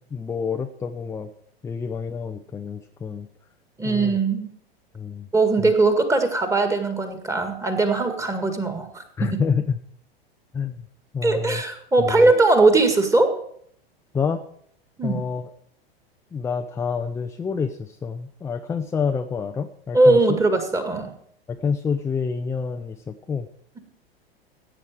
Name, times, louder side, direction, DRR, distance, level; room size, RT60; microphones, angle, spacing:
voice 1, 0.1-1.3 1.6-3.3 3.8-4.2 4.9-5.3 5.6-5.7 9.2-9.8 10.5-10.8 11.1-11.6 12.0-12.3 14.1-14.4 15.0-15.5 16.3-20.4 21.5-23.5, left 6 dB, 10° left, 6 dB, 0.5 m, -28 dB
voice 2, 3.8-4.5 5.3-9.0 11.2-13.3 15.0-15.2 19.9-21.1, right 3 dB, 10° right, 6 dB, 1.9 m, -20 dB
16.0 x 8.9 x 4.8 m, 0.66 s
figure-of-eight pair, 95°, 30 cm